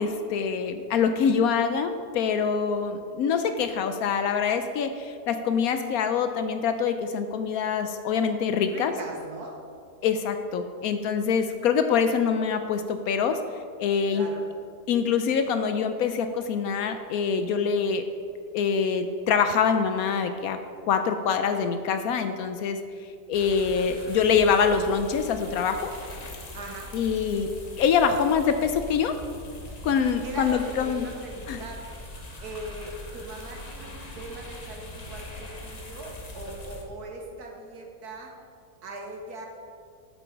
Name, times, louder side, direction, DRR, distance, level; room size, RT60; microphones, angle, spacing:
voice 1, 0.0-8.9 10.0-13.4 13.8-14.3 14.9-18.0 18.5-20.6 20.9-22.8 23.3-25.9 26.9-29.1 29.8-31.1 31.5-31.6, left 6 dB, 70° left, 8 dB, 0.9 m, -25 dB
voice 2, 8.7-9.6 14.1-14.5 26.5-26.9 29.8-29.9 30.2-31.8 32.4-38.4 38.8-39.5, right 2 dB, 75° right, 1 dB, 1.7 m, -40 dB
sound 1, 23.3-36.8, left 1 dB, 30° left, 0.8 m, -41 dB
8.6 x 6.9 x 4.6 m, 2.2 s
omnidirectional pair, 1.7 m